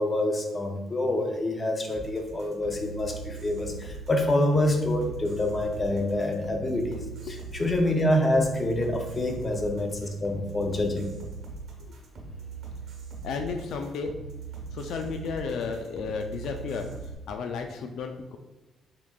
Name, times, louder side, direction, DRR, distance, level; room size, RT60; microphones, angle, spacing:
voice 1, 0.0-11.1, left 1 dB, 30° left, 3 dB, 0.6 m, -26 dB
sound 1, 1.9-17.1, right 4 dB, 70° right, 1.0 m, -40 dB
voice 2, 13.2-14.2 14.7-18.4, left 5 dB, 75° left, 5 dB, 0.3 m, -33 dB
3.6 x 3.6 x 2.3 m, 1.0 s
cardioid pair, 90°, 0 cm